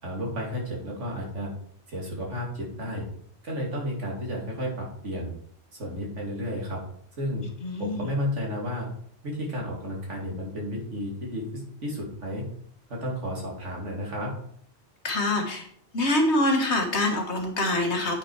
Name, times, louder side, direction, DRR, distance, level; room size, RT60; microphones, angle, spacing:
voice 1, 0.0-1.5 1.9-3.1 3.4-5.3 5.8-6.8 7.2-7.4 7.8-8.9 9.2-12.5 12.9-14.3, equal, 75° right, -2 dB, 2.9 m, -32 dB
voice 2, 7.6-8.0 15.0-15.7 15.9-18.2, left 1 dB, 65° left, 2 dB, 1.9 m, -25 dB
8.7 x 5.9 x 4.7 m, 0.64 s
omnidirectional pair, 1.2 m